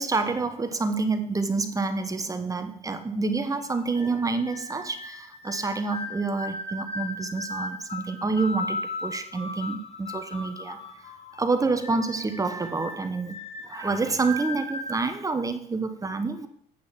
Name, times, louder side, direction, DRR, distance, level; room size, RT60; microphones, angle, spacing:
voice 1, 0.0-10.8 11.4-13.4 13.6-16.5, right 3 dB, 20° right, 7 dB, 1.1 m, -28 dB
sound 1, 3.4-15.0, left 2 dB, 35° left, 1.8 m, -37 dB
8.7 x 6.0 x 7.4 m, 0.66 s
cardioid pair, 110°, 17 cm